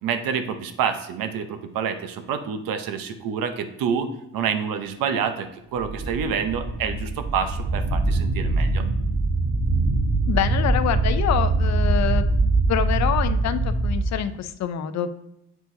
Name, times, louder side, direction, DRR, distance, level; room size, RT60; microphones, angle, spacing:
voice 1, 0.0-4.1 4.3-8.8, right 7 dB, 80° right, 8 dB, 0.8 m, -27 dB
sound 1, 5.8-14.1, right 2 dB, 50° right, 1.0 m, -23 dB
voice 2, 10.3-12.3 12.7-15.2, left 9 dB, 55° left, 11 dB, 0.5 m, -26 dB
7.9 x 4.6 x 2.7 m, 0.84 s
cardioid pair, 95°, 34 cm